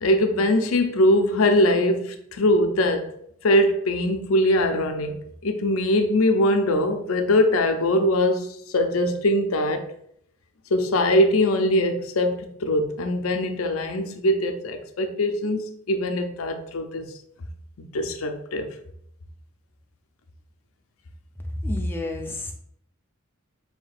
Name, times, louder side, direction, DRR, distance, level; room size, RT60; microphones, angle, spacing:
voice 1, 0.0-3.1 3.4-9.8 10.7-17.0 17.8-18.7, left 1 dB, 90° left, 0.6 m, -22 dB
voice 2, 21.6-22.5, left 1 dB, 10° left, 0.5 m, -28 dB
5.9 x 2.8 x 2.4 m
head